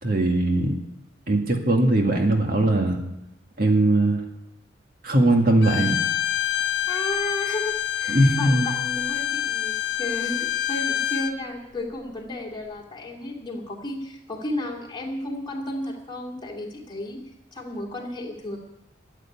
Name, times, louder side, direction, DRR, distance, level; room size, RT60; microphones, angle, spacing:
voice 1, 0.0-0.8 1.3-3.0 3.6-4.2 5.0-5.9 8.1-8.7, right 1 dB, 50° right, 2 dB, 1.9 m, -20 dB
Bowed string instrument, 5.6-11.4, left 12 dB, 65° left, 0.9 m, -27 dB
voice 2, 6.9-17.2 17.5-18.6, left 1 dB, 25° left, -1 dB, 2.7 m, -33 dB
13.5 x 8.2 x 9.8 m, 0.88 s
head